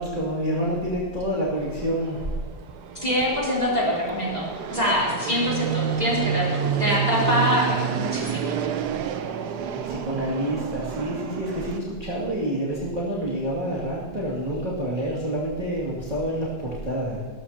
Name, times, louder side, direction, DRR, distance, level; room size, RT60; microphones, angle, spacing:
voice 1, 0.0-2.2 9.7-17.3, right 1 dB, 20° right, -7 dB, 2.4 m, -28 dB
Fixed-wing aircraft airplane, 1.6-11.8, right 8 dB, 75° right, 1.3 m, -29 dB
voice 2, 3.0-8.6, left 1 dB, 20° left, -5 dB, 3.6 m, -24 dB
19.0 x 13.5 x 2.9 m, 1.5 s
omnidirectional pair, 1.8 m